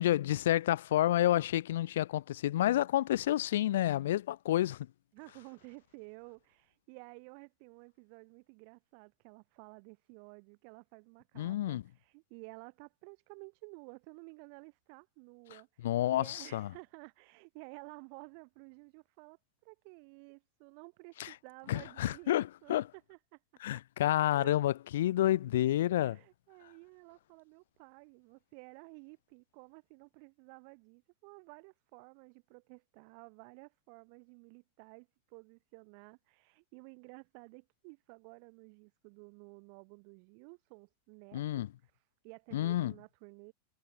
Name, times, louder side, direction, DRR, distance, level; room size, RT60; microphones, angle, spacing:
voice 1, 0.0-4.9 11.4-11.8 15.8-16.7 21.2-21.3 21.7-22.8 23.6-26.2 41.3-41.7 42.5-42.9, left 13 dB, 80° left, 0.7 m, -29 dB
voice 2, 5.1-23.4 23.7-23.8 24.1-24.5 26.0-41.9 42.2-43.5, right 40 dB or more, 55° right, 4.0 m, -53 dB
hypercardioid pair, 125°, 0 cm